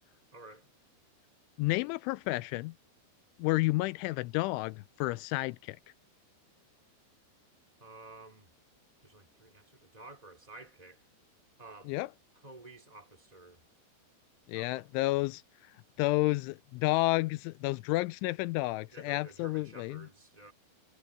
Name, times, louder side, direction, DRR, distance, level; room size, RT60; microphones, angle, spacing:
voice 1, 0.3-0.7 7.8-8.5 9.0-11.0 11.6-11.9 12.4-13.6 14.5-14.9 18.9-20.5, right 2 dB, 10° right, 4.3 m, -51 dB
voice 2, 1.6-2.7 3.4-5.8 11.9-12.1 14.5-15.4 16.0-20.1, left 21 dB, 85° left, 3.0 m, -31 dB
omnidirectional pair, 5.4 m